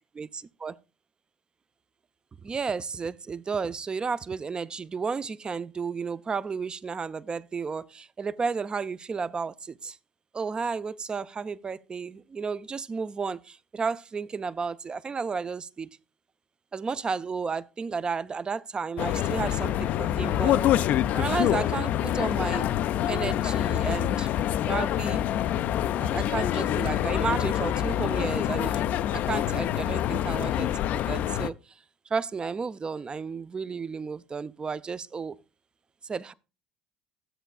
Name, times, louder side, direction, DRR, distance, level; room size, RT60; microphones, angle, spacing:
voice 1, 0.1-0.8 2.4-10.0 10.3-15.9 16.7-20.6 21.1-22.7 23.1-24.3 24.7-25.2 26.0-31.6 32.1-35.4 36.0-36.3, right 5 dB, 30° right, 0.5 m, -32 dB
sound 1, 19.0-31.5, left 11 dB, 55° left, 0.3 m, -26 dB
13.0 x 7.9 x 2.3 m
hypercardioid pair, 65°, 3 cm